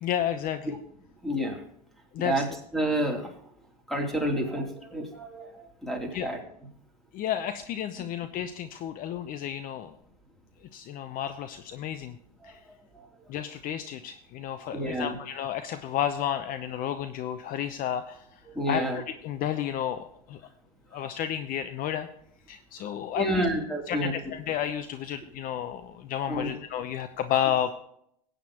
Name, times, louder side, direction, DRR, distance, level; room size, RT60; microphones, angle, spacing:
voice 1, 0.0-0.8 2.1-2.4 6.1-6.3 7.1-9.9 10.7-12.2 12.4-12.6 13.3-20.4 20.9-22.1 22.5-23.5 23.9-27.7, left 10 dB, 40° left, 10 dB, 0.8 m, -32 dB
voice 2, 1.2-1.6 2.2-2.5 2.7-3.3 3.9-6.4 12.4-12.5 12.9-13.1 14.7-15.1 18.5-19.0 23.1-24.1 26.3-26.5, right 1 dB, ahead, 1 dB, 3.1 m, -29 dB
15.5 x 9.3 x 3.0 m, 0.70 s
hypercardioid pair, 100°, 21 cm